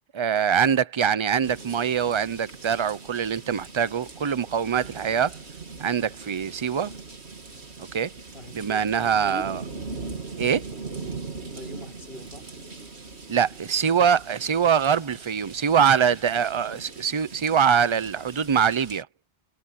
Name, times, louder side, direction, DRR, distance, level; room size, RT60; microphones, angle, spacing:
voice 1, 0.1-5.4 5.8-6.9 7.8-8.1 8.5-9.6 10.4-10.6 13.3-19.1, right 7 dB, 35° right, 0.5 m, -23 dB
sound 1, 1.4-19.0, right 4 dB, 70° right, 2.5 m, -41 dB
voice 2, 8.3-9.6 11.4-12.5, left 2 dB, 60° left, 4.8 m, -42 dB
omnidirectional pair, 1.1 m